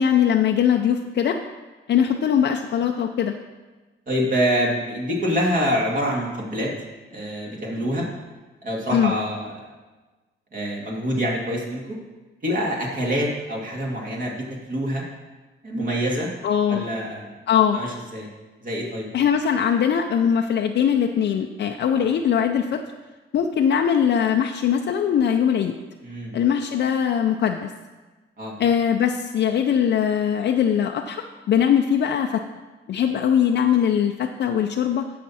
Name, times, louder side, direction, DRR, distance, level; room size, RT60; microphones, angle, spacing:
voice 1, 0.0-1.4 1.9-3.3 8.9-9.1 16.4-16.9 17.5-17.8 19.1-22.8 23.3-25.7 26.3-27.7 28.6-32.4 32.9-35.0, left 8 dB, 55° left, 4 dB, 0.6 m, -21 dB
voice 2, 4.1-6.7 7.1-8.1 8.6-9.7 10.5-12.0 12.4-14.4 14.7-15.0 15.6-16.3 16.7-17.3 17.7-18.3 18.6-19.1 21.9-22.0 26.0-26.3 28.4-28.5, equal, 40° right, -3 dB, 2.2 m, -25 dB
14.5 x 5.9 x 4.2 m, 1.2 s
cardioid pair, 115°, 21 cm